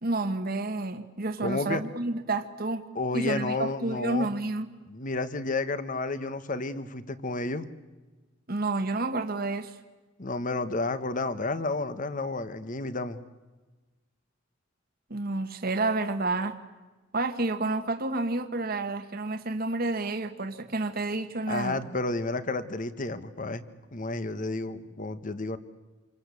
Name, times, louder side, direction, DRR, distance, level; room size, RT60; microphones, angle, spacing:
voice 1, 0.0-2.8 3.1-4.7 8.5-9.8 15.1-16.6 17.1-21.8, right 2 dB, 50° right, 1.3 m, -30 dB
voice 2, 1.4-1.8 2.9-4.3 4.9-7.7 10.2-13.2 21.5-23.6 23.9-25.6, left 2 dB, 40° left, 1.3 m, -31 dB
27.5 x 24.0 x 8.4 m
head